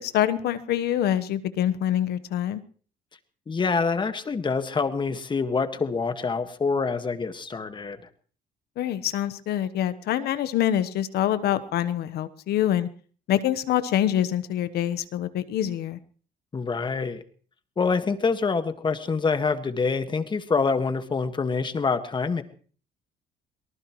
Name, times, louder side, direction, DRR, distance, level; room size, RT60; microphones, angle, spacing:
voice 1, 0.0-2.6 8.8-12.9 13.3-16.0, left 11 dB, 70° left, 13 dB, 1.1 m, -25 dB
voice 2, 3.5-8.0 16.5-17.2 17.8-22.4, left 4 dB, 30° left, 9 dB, 1.7 m, -26 dB
23.5 x 19.0 x 3.1 m, 0.43 s
cardioid pair, 110°, 17 cm